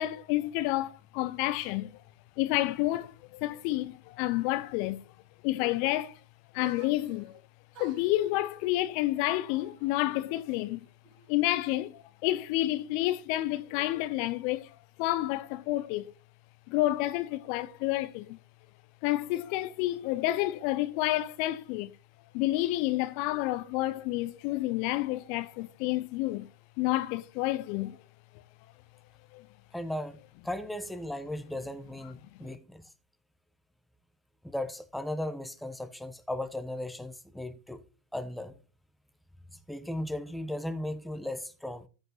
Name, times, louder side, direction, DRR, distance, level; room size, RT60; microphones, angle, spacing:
voice 1, 0.0-2.0 2.4-5.1 5.4-6.2 6.5-7.4 7.8-10.8 11.3-16.1 16.7-18.4 19.0-21.9 22.3-26.5 26.8-28.0 29.3-29.5 32.4-32.6, left 16 dB, 50° left, 0.6 m, -29 dB
sound 1, 6.6-7.4 7.7-10.5 10.8-11.6, right 5 dB, 50° right, 3.9 m, -54 dB
voice 2, 29.7-30.2 30.4-32.8 34.4-37.8 38.1-38.6 39.7-41.9, left 1 dB, 5° left, 1.0 m, -36 dB
14.0 x 5.3 x 4.0 m
hypercardioid pair, 100°, 0 cm